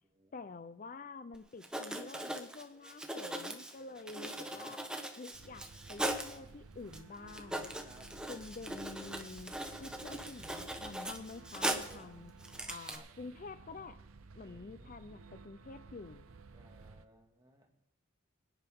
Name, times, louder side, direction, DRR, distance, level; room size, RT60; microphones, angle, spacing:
voice 1, 0.3-4.9 5.2-7.7 8.3-12.3 12.7-14.0 14.3-16.3, left 3 dB, 40° left, 12 dB, 0.4 m, -48 dB
Writing, 1.3-1.4 1.6-6.4 6.9-7.0 7.3-12.0 12.4-13.0, right 1 dB, 5° right, 0.9 m, -40 dB
voice 2, 3.8-4.8 7.8-8.1 9.8-10.5 11.7-12.1 12.9-13.0 14.4-15.0 16.5-17.7, right 1 dB, 20° right, 1 dB, 1.9 m, -61 dB
sound 1, 5.3-17.1, right 4 dB, 85° right, 0.7 m, -55 dB
23.0 x 10.0 x 3.5 m, 0.82 s
head